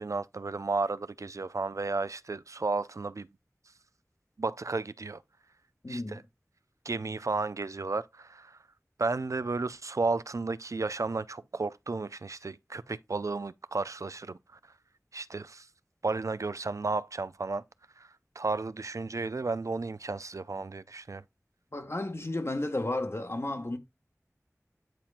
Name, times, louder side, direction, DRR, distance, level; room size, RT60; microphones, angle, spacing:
voice 1, 0.0-3.3 4.4-5.2 5.9-6.2 6.9-8.6 9.0-14.4 15.1-15.7 16.0-17.6 18.0-18.1 18.4-21.2, right 3 dB, 65° right, 0.3 m, -33 dB
voice 2, 5.8-6.2 21.7-23.8, left 2 dB, 50° left, 1.0 m, -33 dB
9.0 x 4.3 x 2.4 m
wide cardioid pair, 45°, 6 cm